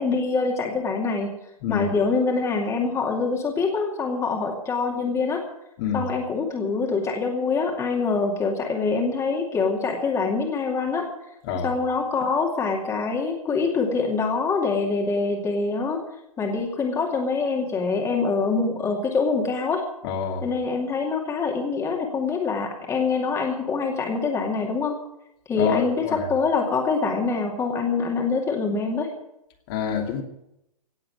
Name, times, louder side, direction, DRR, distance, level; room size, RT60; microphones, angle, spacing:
voice 1, 0.0-1.4 1.7-5.4 5.9-11.1 11.6-16.0 16.4-19.8 20.4-25.0 25.5-25.9 26.3-29.1, left 4 dB, 15° left, 1 dB, 2.4 m, -25 dB
voice 2, 1.6-1.9 5.8-6.1 11.4-11.8 20.0-20.5 25.6-26.3 29.7-30.2, left 7 dB, 40° left, 2 dB, 2.6 m, -27 dB
17.5 x 7.6 x 9.3 m, 0.84 s
figure-of-eight pair, 120°, 19 cm